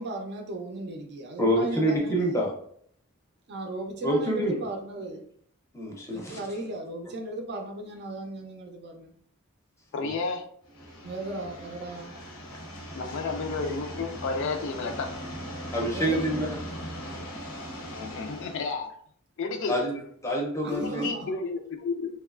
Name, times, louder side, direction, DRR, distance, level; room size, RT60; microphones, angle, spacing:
voice 1, 0.0-2.2 3.5-5.2 6.1-9.1 11.0-12.2 15.9-16.5 20.6-21.3, right 2 dB, 50° right, 2 dB, 0.5 m, -36 dB
voice 2, 1.4-2.5 4.0-4.6 5.7-6.4 10.0-10.1 15.7-16.6 19.7-21.1, equal, 15° left, -2 dB, 0.6 m, -27 dB
voice 3, 9.9-10.4 12.9-15.1 17.9-18.9 19.4-19.8 20.7-22.1, left 4 dB, 55° left, 5 dB, 0.3 m, -31 dB
sound 1, 10.7-18.7, equal, 90° left, 0.8 m, -39 dB
2.9 x 2.3 x 2.4 m, 0.62 s
head